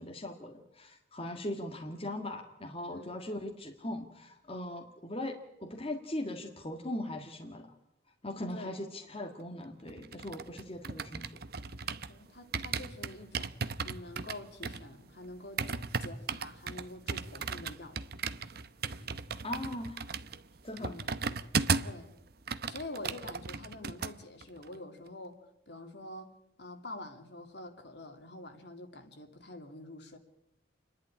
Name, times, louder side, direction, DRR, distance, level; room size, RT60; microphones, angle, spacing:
voice 1, 0.0-7.8 8.2-11.3 19.4-20.0 20.6-20.9, left 1 dB, 30° left, 2 dB, 1.7 m, -39 dB
sound 1, 9.9-12.2 12.5-22.0 22.3-24.1 24.4-24.7, right 5 dB, 50° right, 0.9 m, -36 dB
voice 2, 12.1-13.5 13.8-15.6 16.0-18.0 20.8-21.1 21.8-22.1 22.7-25.4 25.7-26.3 26.6-30.2, left 2 dB, 55° left, 5 dB, 2.7 m, -46 dB
29.0 x 11.0 x 9.8 m, 0.88 s
head